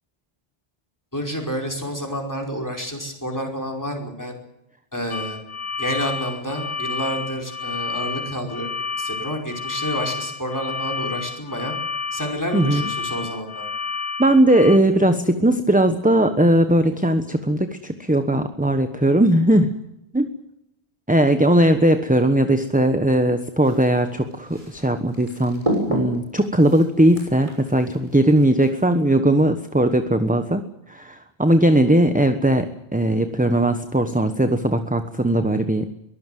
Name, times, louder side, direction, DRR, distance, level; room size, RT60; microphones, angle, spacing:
voice 1, 1.1-4.3 4.9-5.4 5.8-8.7 9.0-11.7 12.1-13.7, equal, 15° left, 3 dB, 5.1 m, -29 dB
sound 1, 5.1-14.8, left 4 dB, 90° left, 2.2 m, -30 dB
voice 2, 14.2-19.7 20.1-20.3 21.1-25.6 25.9-30.6 30.9-35.9, right 1 dB, 10° right, 8 dB, 1.1 m, -18 dB
sound 2, 23.6-28.7, right 1 dB, 30° right, 6.3 m, -31 dB
23.0 x 15.5 x 9.2 m, 0.87 s
omnidirectional pair, 1.1 m